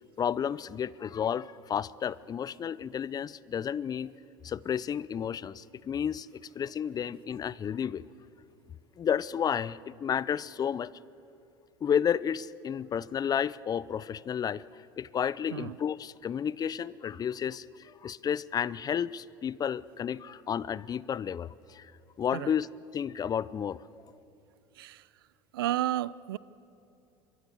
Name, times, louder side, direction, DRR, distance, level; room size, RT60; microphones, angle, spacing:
voice 1, 0.2-4.1 4.4-8.0 9.0-10.9 11.8-21.9 22.2-23.8, left 8 dB, 35° left, 21 dB, 0.6 m, -32 dB
voice 2, 25.5-26.4, right 14 dB, 85° right, 21 dB, 0.5 m, -32 dB
26.0 x 23.0 x 7.2 m, 2.8 s
hypercardioid pair, 80°, 12 cm